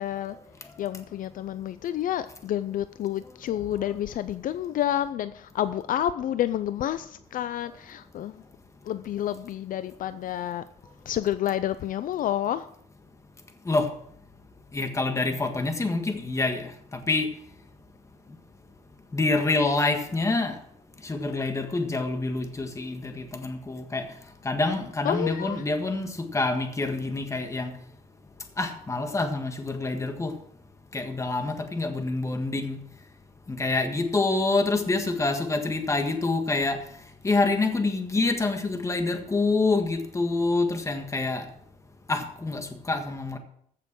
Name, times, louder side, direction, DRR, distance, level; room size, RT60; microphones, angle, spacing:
voice 1, 0.0-8.4 8.8-10.7 11.1-12.7 25.0-25.6, left 11 dB, 60° left, 13 dB, 0.5 m, -29 dB
voice 2, 14.7-16.7 17.1-17.3 19.1-20.6 21.0-24.1 24.4-27.7 28.6-30.3 30.9-32.8 33.5-36.8 37.2-41.5 42.1-43.4, left 3 dB, 20° left, 6 dB, 1.6 m, -26 dB
15.0 x 6.8 x 6.1 m, 0.68 s
cardioid pair, 140°, 16 cm